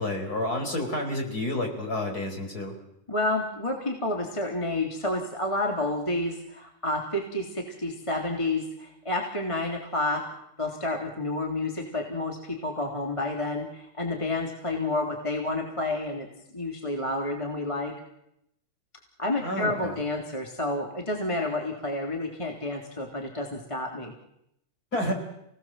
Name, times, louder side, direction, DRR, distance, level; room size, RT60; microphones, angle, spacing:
voice 1, 0.0-2.7 19.4-20.0 24.9-25.1, left 1 dB, 30° left, 3 dB, 5.1 m, -30 dB
voice 2, 3.1-10.2 10.6-16.3 16.5-17.9 19.2-24.1, left 2 dB, 10° left, 1 dB, 3.0 m, -30 dB
29.5 x 18.5 x 7.6 m, 0.79 s
omnidirectional pair, 3.5 m